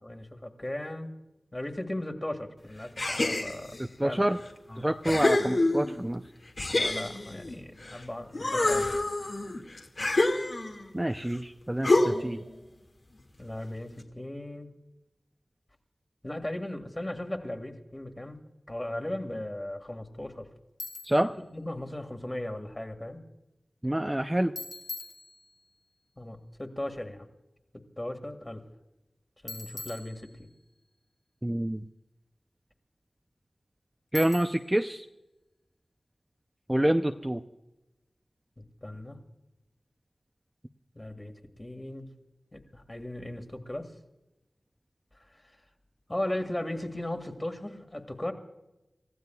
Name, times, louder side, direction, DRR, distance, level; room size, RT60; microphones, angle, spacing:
voice 1, 0.0-1.2 1.5-3.7 4.0-4.2 4.7-5.2 6.7-8.9 13.4-14.7 16.2-18.4 18.7-20.5 21.5-23.2 26.2-27.3 28.0-28.6 29.4-30.5 38.6-39.2 40.9-42.1 42.5-43.9 45.3-45.5 46.1-48.3, left 1 dB, 20° left, 5 dB, 1.9 m, -37 dB
sound 1, 3.0-3.8 4.5-4.6 5.0-6.1 6.6-8.0 8.3-10.9 11.8-12.4, left 2 dB, 60° left, 2.0 m, -27 dB
voice 2, 4.0-4.4 4.8-6.2 10.9-12.4 21.1-21.3 23.8-24.5 31.4-31.8 34.1-35.0 36.7-37.4, right 1 dB, 15° right, 5 dB, 0.5 m, -27 dB
Bicycle, 20.8-21.3 24.6-25.8 29.5-30.7 34.1-34.8, left 3 dB, 80° left, 2.0 m, -42 dB
29.5 x 15.0 x 2.3 m, 0.98 s
wide cardioid pair, 85°, 0 cm